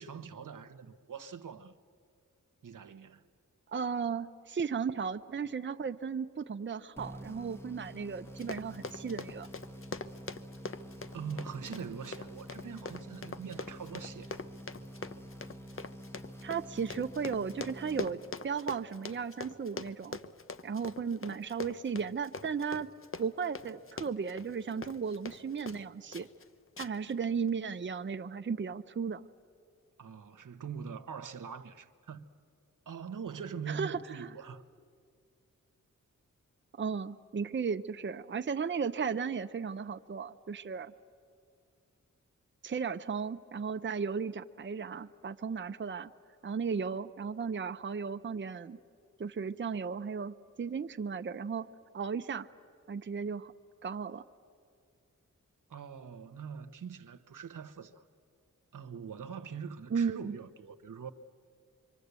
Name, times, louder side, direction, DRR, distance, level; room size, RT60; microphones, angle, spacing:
voice 1, 0.0-1.7 2.6-3.2 11.1-14.3 30.0-32.2 32.9-34.6 55.7-58.0 58.7-61.1, right 6 dB, 75° right, 1.1 m, -43 dB
voice 2, 3.7-9.5 16.4-18.2 18.4-20.2 20.6-22.9 23.2-26.3 26.8-29.2 33.7-34.3 36.8-40.9 42.6-46.1 46.4-48.8 49.2-51.7 51.9-52.5 52.9-53.5 53.8-54.2 59.9-60.3, right 6 dB, 35° right, 0.7 m, -35 dB
sound 1, 7.0-18.7, equal, 10° left, 1.2 m, -48 dB
Run, 8.3-25.8 26.1-26.4 26.8-27.1 27.5-27.6, left 4 dB, 40° left, 0.9 m, -43 dB
25.0 x 25.0 x 8.2 m
wide cardioid pair, 75°, 32 cm